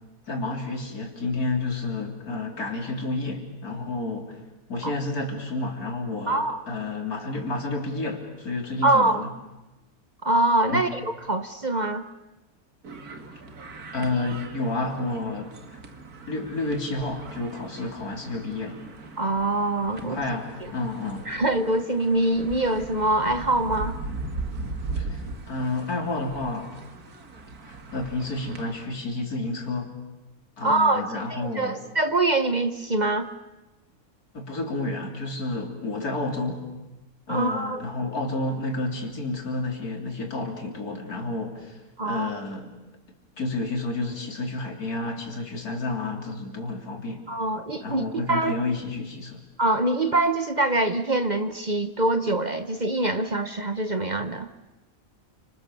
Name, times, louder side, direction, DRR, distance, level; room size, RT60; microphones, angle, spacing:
voice 1, 0.3-4.4 4.7-9.3 10.7-10.8 13.9-15.8 16.3-18.8 20.0-21.3 25.0-26.7 27.6-29.9 30.6-31.8 34.3-36.7 37.3-42.7 43.4-47.2 47.8-49.4, left 2 dB, 90° left, 2 dB, 3.9 m, -30 dB
voice 2, 6.3-6.6 8.8-9.2 10.2-12.0 19.2-20.2 21.3-24.0 30.6-33.3 37.3-37.8 42.0-42.3 47.3-48.6 49.6-54.5, right 2 dB, 35° right, 9 dB, 1.0 m, -24 dB
sound 1, 12.8-28.9, right 3 dB, 90° right, 2.4 m, -39 dB
29.5 x 26.0 x 7.1 m, 1.0 s
omnidirectional pair, 1.5 m